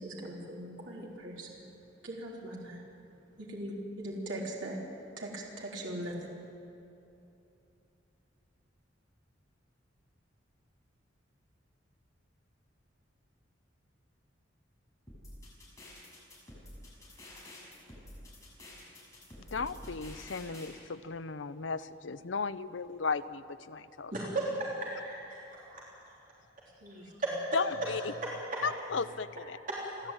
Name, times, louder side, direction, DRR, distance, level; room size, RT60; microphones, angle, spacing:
voice 1, 0.0-1.7 2.0-2.8 3.4-4.8 5.2-6.4 26.8-27.1, right 1 dB, 80° right, -3 dB, 3.7 m, -40 dB
sound 1, 15.1-20.7, left 1 dB, 15° left, 6.5 m, -49 dB
voice 2, 19.5-24.1 27.0-27.1 27.5-28.0 28.6-29.6, left 4 dB, 75° left, 14 dB, 0.7 m, -35 dB
voice 3, 24.1-25.4 25.7-25.8 26.9-27.3 28.2-28.6 29.7-29.8, right 2 dB, 45° right, -5 dB, 3.4 m, -35 dB
29.5 x 11.5 x 9.0 m, 2.9 s
head